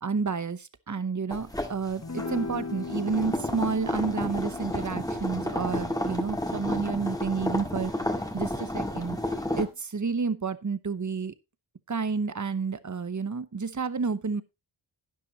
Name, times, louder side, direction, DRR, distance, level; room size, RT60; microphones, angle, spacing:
voice 1, 0.0-7.9 8.3-9.2 9.6-11.3 11.9-14.4, right 5 dB, 35° right, 14 dB, 0.9 m, -30 dB
sound 1, 1.3-9.6, left 1 dB, 10° left, 1.7 m, -31 dB
sound 2, 2.0-8.6, left 3 dB, 35° left, 1.3 m, -40 dB
11.5 x 10.5 x 2.9 m, 0.24 s
wide cardioid pair, 70°, 48 cm